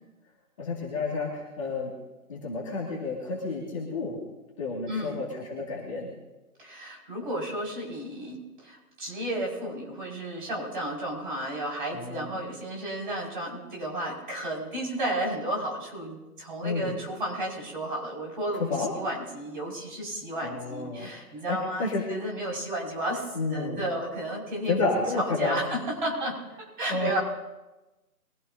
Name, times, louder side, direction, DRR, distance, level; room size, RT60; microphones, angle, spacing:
voice 1, 0.6-1.9 2.3-4.2 4.6-6.1 11.9-12.3 16.6-17.0 18.7-18.9 20.4-22.0 23.3-23.8 24.6-25.6 26.9-27.1, left 3 dB, 20° left, -4 dB, 2.1 m, -30 dB
voice 2, 4.9-5.2 6.6-24.8 25.1-27.2, right 1 dB, 30° right, -3 dB, 5.7 m, -33 dB
23.0 x 15.5 x 2.7 m, 1.1 s
figure-of-eight pair, 155°, 45 cm